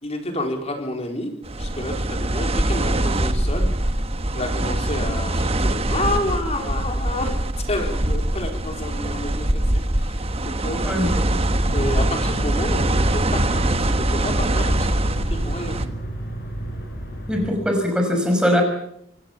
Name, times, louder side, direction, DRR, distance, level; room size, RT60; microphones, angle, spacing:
voice 1, 0.0-3.7 4.3-7.3 7.7-11.0 11.7-15.9, left 1 dB, 30° left, 3 dB, 4.2 m, -30 dB
sound 1, 1.4-15.9, right 1 dB, 30° right, 1.2 m, -23 dB
voice 2, 10.8-11.4 17.3-18.6, equal, 5° right, 3 dB, 5.5 m, -21 dB
sound 2, 11.6-17.5, equal, 45° left, 6.5 m, -32 dB
26.0 x 17.0 x 7.3 m, 0.72 s
head